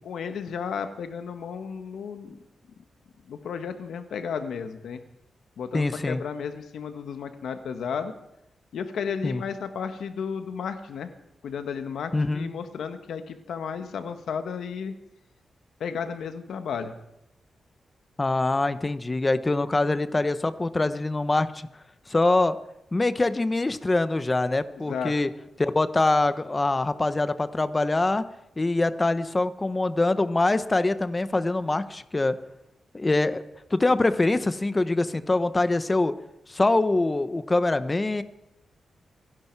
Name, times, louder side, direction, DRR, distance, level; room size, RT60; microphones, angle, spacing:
voice 1, 0.0-2.4 3.3-5.0 5.6-8.1 8.7-11.1 11.4-14.9 15.8-16.9 24.8-25.1, left 6 dB, 90° left, 8 dB, 1.4 m, -33 dB
voice 2, 5.7-6.2 9.2-9.4 12.1-12.5 18.2-21.7 22.1-22.6 22.9-25.3 25.6-28.2 28.6-32.4 32.9-33.4 33.7-36.1 36.5-38.2, left 2 dB, 20° left, 12 dB, 0.9 m, -24 dB
26.5 x 11.5 x 4.7 m, 0.85 s
wide cardioid pair, 115°, 0 cm